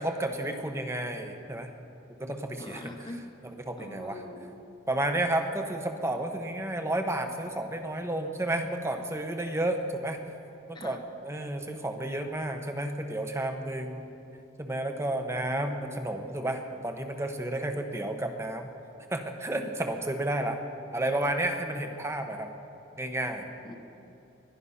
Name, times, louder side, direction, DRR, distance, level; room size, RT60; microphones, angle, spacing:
voice 1, 0.0-1.7 2.2-2.9 3.7-4.2 4.9-10.2 10.7-14.0 14.6-18.7 19.1-20.6 20.9-22.5 23.0-23.5, right 1 dB, 15° right, 5 dB, 1.0 m, -31 dB
voice 2, 2.6-3.2 3.5-4.8 10.7-11.0 23.6-23.7, left 1 dB, 25° left, 5 dB, 1.1 m, -44 dB
21.0 x 12.0 x 5.6 m, 2.8 s
head